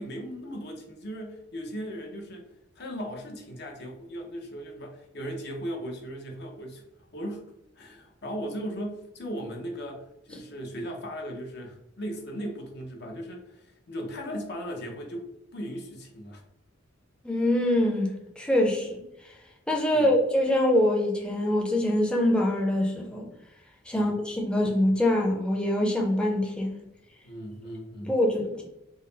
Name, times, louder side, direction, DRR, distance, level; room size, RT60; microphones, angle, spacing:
voice 1, 0.0-2.4 2.8-6.8 7.1-15.2 15.5-16.4 19.9-20.1 23.9-24.1 27.2-28.1, equal, 55° left, 0.7 m, -37 dB
voice 2, 17.2-19.0 19.7-23.3 23.9-26.8 28.0-28.6, left 1 dB, 5° left, 0.5 m, -24 dB
3.8 x 2.0 x 3.9 m
head